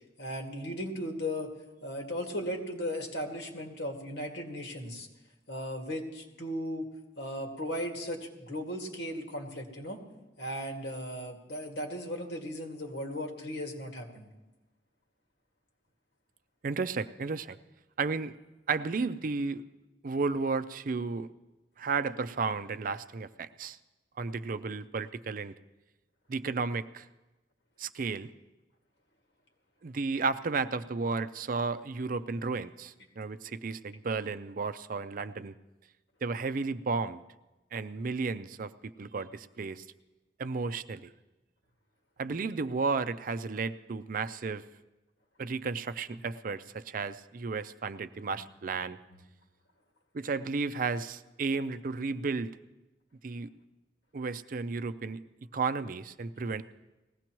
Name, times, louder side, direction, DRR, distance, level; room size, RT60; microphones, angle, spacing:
voice 1, 0.2-1.5 1.8-5.1 5.5-6.9 7.2-10.0 10.4-14.3, equal, 80° left, 2 dB, 2.0 m, -36 dB
voice 2, 16.6-17.6 18.0-18.3 18.7-19.6 20.0-21.3 21.8-23.8 24.2-25.5 26.3-27.1 27.8-28.3 29.8-35.5 36.2-37.2 37.7-39.8 40.4-41.1 42.2-44.6 45.4-49.0 50.1-52.6 53.2-53.5 54.1-55.2 55.5-56.6, right 4 dB, 50° right, 12 dB, 0.5 m, -33 dB
20.0 x 16.0 x 3.0 m, 1.1 s
head